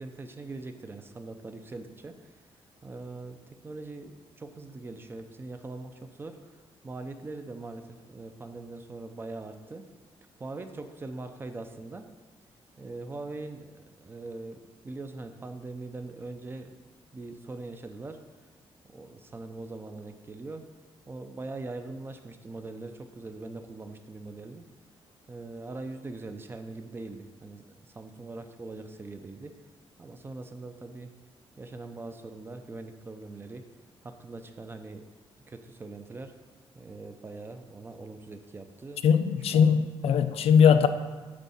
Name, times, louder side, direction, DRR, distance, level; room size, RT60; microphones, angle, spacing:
voice 1, 0.0-2.3 2.8-6.6 6.8-9.9 10.4-12.1 12.8-18.2 18.9-20.6 21.1-24.7 25.3-29.5 30.0-31.1 31.6-33.7 34.0-35.0 35.5-36.3 36.7-39.0 39.5-39.8, right 3 dB, 20° right, 7 dB, 0.5 m, -42 dB
voice 2, 39.0-40.9, left 7 dB, 80° left, 10 dB, 0.6 m, -20 dB
9.5 x 3.6 x 7.0 m, 1.3 s
wide cardioid pair, 175°, 10 cm